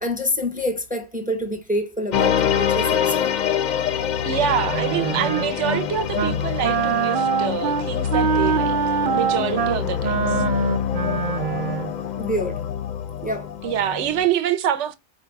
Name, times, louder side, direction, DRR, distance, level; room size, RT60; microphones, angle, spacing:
voice 1, 0.0-3.3 12.2-12.6 13.2-13.5, left 1 dB, 10° right, 0.4 m, -26 dB
sound 1, 2.1-14.2, left 9 dB, 55° left, 0.5 m, -25 dB
voice 2, 4.2-8.8 9.1-10.4 13.6-15.0, right 10 dB, 80° right, 0.9 m, -25 dB
Wind instrument woodwind instrument, 4.7-5.8 6.1-6.4 6.6-11.9, right 8 dB, 55° right, 0.6 m, -24 dB
4.3 x 2.2 x 4.5 m
omnidirectional pair, 1.2 m